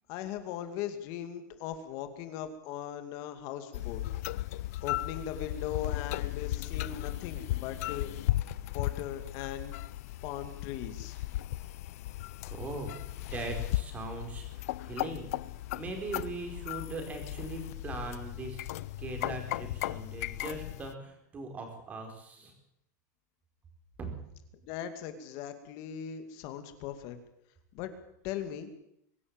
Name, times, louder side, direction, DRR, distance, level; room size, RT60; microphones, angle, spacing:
voice 1, 0.1-4.0 4.8-8.1 8.7-9.8 10.2-11.2 24.6-27.2 27.7-27.9 28.2-28.7, left 10 dB, 35° left, 8 dB, 2.5 m, -39 dB
sound 1, 3.7-20.9, left 16 dB, 55° left, 0.7 m, -36 dB
voice 2, 12.5-15.3 15.7-22.5 24.0-24.1, right 3 dB, 15° right, 4 dB, 4.5 m, -40 dB
23.5 x 13.0 x 8.9 m, 0.77 s
supercardioid pair, 175°, 10 cm